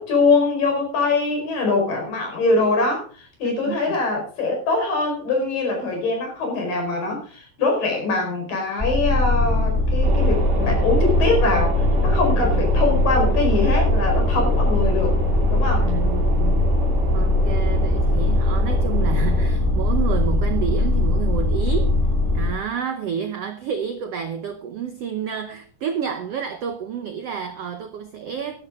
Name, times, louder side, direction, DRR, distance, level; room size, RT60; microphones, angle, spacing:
voice 1, 0.0-15.1 15.5-15.9, left 3 dB, 70° left, 6.7 m, -23 dB
voice 2, 3.4-4.0 12.4-12.6 15.8-16.7 17.1-21.9 22.3-28.7, right 8 dB, 75° right, 1.4 m, -30 dB
sound 1, 8.8-22.5, left 2 dB, 5° left, 1.9 m, -20 dB
sound 2, 10.0-19.5, right 6 dB, 30° right, 2.7 m, -28 dB
14.0 x 12.5 x 3.8 m
omnidirectional pair, 4.1 m